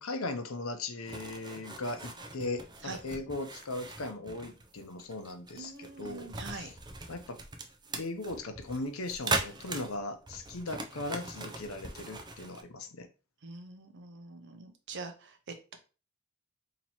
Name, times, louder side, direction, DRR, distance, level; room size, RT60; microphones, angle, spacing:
voice 1, 0.0-6.7 7.1-7.4 8.0-13.1, left 2 dB, 90° left, 7 dB, 0.7 m, -38 dB
sound 1, 1.1-12.6, right 3 dB, 20° right, 0.5 m, -40 dB
voice 2, 5.6-6.7 13.4-15.8, right 3 dB, 60° right, 6 dB, 0.7 m, -44 dB
2.9 x 2.9 x 4.2 m, 0.34 s
head